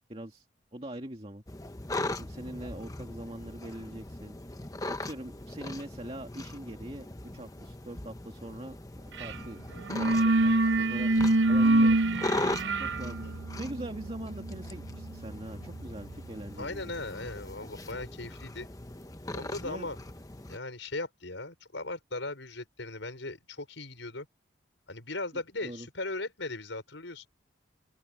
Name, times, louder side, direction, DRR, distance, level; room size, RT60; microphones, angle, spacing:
voice 1, 0.1-0.5 0.7-1.4 2.2-4.4 4.9-7.1 7.3-9.6 9.9-12.0 12.3-16.8 19.6-19.9 25.6-25.9, right 1 dB, 30° right, 2.3 m, -42 dB
sound 1, 1.5-20.6, left 2 dB, 20° left, 1.0 m, -40 dB
sound 2, 9.2-9.4 9.7-16.3, right 2 dB, 75° right, 0.7 m, -27 dB
voice 2, 16.6-18.7 19.3-20.0 20.5-24.3 24.9-27.3, left 2 dB, 85° left, 5.7 m, -38 dB
open air
head